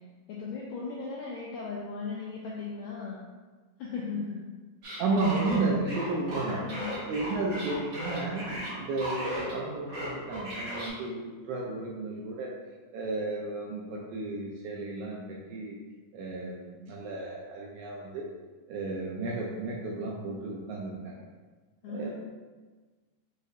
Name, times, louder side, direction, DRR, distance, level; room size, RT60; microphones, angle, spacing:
voice 1, 0.3-3.2 3.8-4.5 6.3-7.1 21.8-22.1, left 4 dB, 85° left, -4 dB, 1.6 m, -37 dB
sound 1, 4.8-9.6 9.9-10.9, equal, 60° right, 1.1 m, -36 dB
voice 2, 5.0-6.6 6.9-8.5 8.7-12.5 12.9-15.8 16.1-18.3 18.7-21.2 21.9-22.1, right 3 dB, 80° right, -3 dB, 1.8 m, -33 dB
6.3 x 2.4 x 2.6 m, 1.3 s
omnidirectional pair, 3.8 m